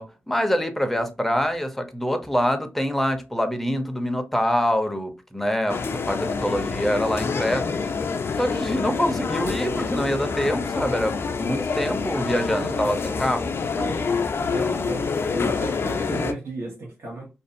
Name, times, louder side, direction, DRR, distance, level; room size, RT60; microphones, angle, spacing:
voice 1, 0.0-7.8 8.4-13.9 14.5-14.9, equal, 5° left, 0.6 m, -25 dB
sound 1, 5.7-16.3, left 5 dB, 55° left, 0.4 m, -27 dB
voice 2, 12.1-12.9 14.4-17.3, right 2 dB, 65° right, 1.0 m, -35 dB
2.5 x 2.3 x 2.6 m
cardioid pair, 60°, 5 cm